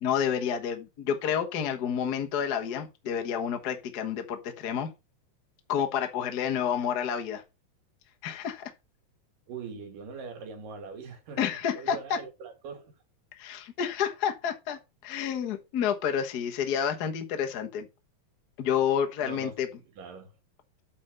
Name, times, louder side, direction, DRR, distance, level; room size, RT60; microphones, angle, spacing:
voice 1, 0.0-4.9 5.7-7.4 8.2-8.6 11.4-12.2 13.4-17.9 18.6-19.7, left 8 dB, 60° left, 1.0 m, -29 dB
voice 2, 9.5-11.4 11.7-12.9 19.2-19.5 20.0-20.3, right 5 dB, 80° right, 3.8 m, -41 dB
8.6 x 4.5 x 5.3 m
omnidirectional pair, 3.8 m